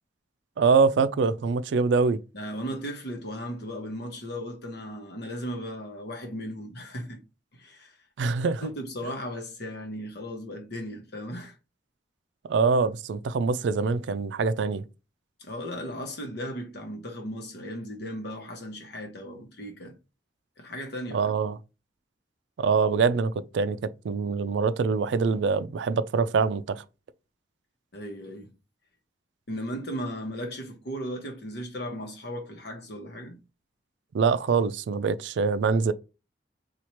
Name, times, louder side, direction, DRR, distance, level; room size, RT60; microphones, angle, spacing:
voice 1, 0.6-2.2 8.2-8.7 12.4-14.8 21.1-21.6 22.6-26.8 34.1-35.9, right 5 dB, 75° right, 0.4 m, -24 dB
voice 2, 2.3-7.2 7.5-8.0 8.6-11.5 15.4-19.9 20.6-21.3 27.9-28.5 29.5-33.4, equal, 65° left, 0.9 m, -36 dB
3.0 x 2.4 x 4.3 m
head